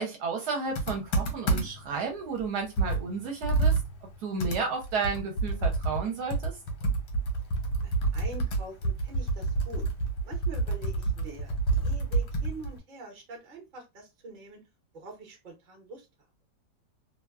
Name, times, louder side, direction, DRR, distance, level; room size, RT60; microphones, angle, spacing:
voice 1, 0.0-3.7 4.2-6.5, right 4 dB, 70° right, 1.1 m, -32 dB
Computer keyboard, 0.8-1.9 2.4-2.5 2.8-6.1 6.3-12.8, right 3 dB, 75° left, 1.3 m, -28 dB
voice 2, 7.8-9.9 10.2-14.6 14.9-16.1, right 2 dB, 40° right, 0.8 m, -45 dB
2.9 x 2.2 x 2.3 m
omnidirectional pair, 1.9 m